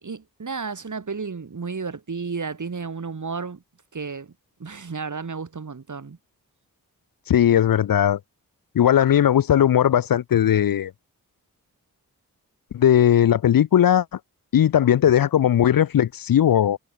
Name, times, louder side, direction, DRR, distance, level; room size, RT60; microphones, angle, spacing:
voice 1, 0.0-3.6 3.9-4.3 4.6-6.2, right 5 dB, 55° right, 3.1 m, -32 dB
voice 2, 7.3-8.2 8.7-10.9 12.7-14.1 14.5-16.8, left 10 dB, 65° left, 0.6 m, -18 dB
cardioid pair, 45°, 37 cm